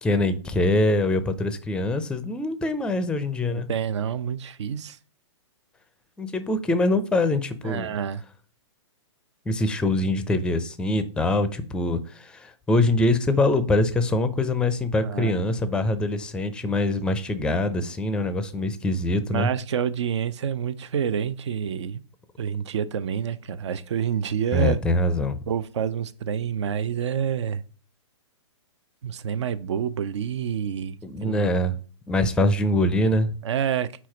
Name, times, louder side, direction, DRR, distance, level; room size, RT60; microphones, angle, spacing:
voice 1, 0.0-3.7 6.2-7.9 9.5-19.5 24.5-25.5 31.0-31.8 32.1-33.3, left 2 dB, 5° left, 0.5 m, -24 dB
voice 2, 3.5-5.0 7.6-8.2 15.0-15.4 19.3-22.0 22.4-24.8 25.5-27.6 29.0-31.0 31.2-31.5 33.4-33.9, right 8 dB, 65° right, 0.6 m, -28 dB
4.7 x 4.2 x 5.8 m
hypercardioid pair, 130°, 16 cm